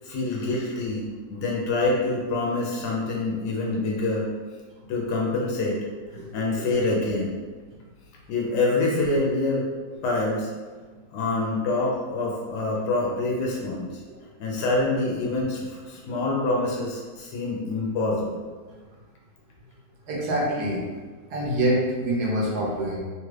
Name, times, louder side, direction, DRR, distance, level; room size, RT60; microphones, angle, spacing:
voice 1, 0.0-4.3 4.9-5.8 6.3-7.4 8.3-9.6 10.0-10.5 11.1-13.9 14.4-18.5, left 2 dB, 80° left, -2 dB, 1.2 m, -26 dB
voice 2, 20.1-20.9 21.3-23.0, right 1 dB, 80° right, -3 dB, 1.3 m, -25 dB
3.2 x 2.4 x 3.1 m, 1.4 s
omnidirectional pair, 1.7 m